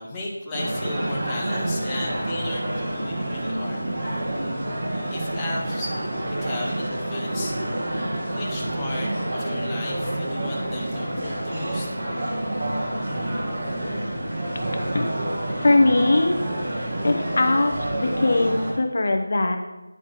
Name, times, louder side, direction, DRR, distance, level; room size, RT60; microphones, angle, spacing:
voice 1, 0.0-3.8 5.1-6.0 6.3-7.6 8.3-11.9, left 2 dB, 10° left, -5 dB, 0.8 m, -35 dB
sound 1, 0.5-18.7, right 1 dB, 35° right, 1.7 m, -28 dB
voice 2, 15.6-16.4 17.0-19.6, left 2 dB, 40° left, 5 dB, 0.7 m, -21 dB
9.7 x 4.0 x 5.0 m, 1.0 s
figure-of-eight pair, 175°, 0 cm